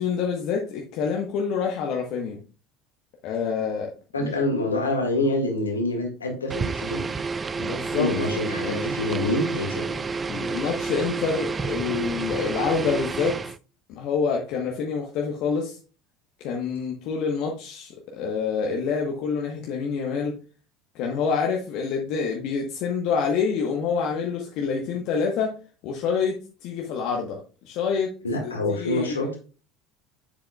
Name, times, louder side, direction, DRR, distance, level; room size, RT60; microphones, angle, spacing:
voice 1, 0.0-2.4 3.2-3.9 4.2-4.3 7.6-8.1 8.5-8.9 10.3-13.4 13.9-15.8 16.4-20.3 20.9-25.5 25.8-28.1 28.4-29.3, left 5 dB, 55° left, 0 dB, 1.1 m, -27 dB
voice 2, 4.1-7.2 7.9-10.0 28.2-29.4, left 1 dB, 85° left, 2 dB, 1.8 m, -26 dB
sound 1, 6.5-13.6, right 4 dB, 25° right, 0.3 m, -30 dB
7.5 x 7.1 x 2.3 m, 0.36 s
figure-of-eight pair, 70°, 0 cm